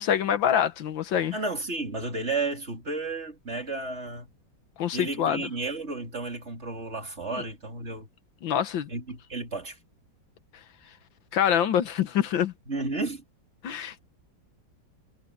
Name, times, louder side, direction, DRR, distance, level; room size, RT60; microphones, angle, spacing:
voice 1, 0.0-1.4 4.8-5.5 7.3-7.4 8.4-8.9 11.3-12.5 13.6-14.0, left 9 dB, 75° left, 1.8 m, -25 dB
voice 2, 1.3-4.3 4.9-8.1 8.9-9.8 12.7-13.2, right 3 dB, 35° right, 3.6 m, -32 dB
omnidirectional pair, 2.1 m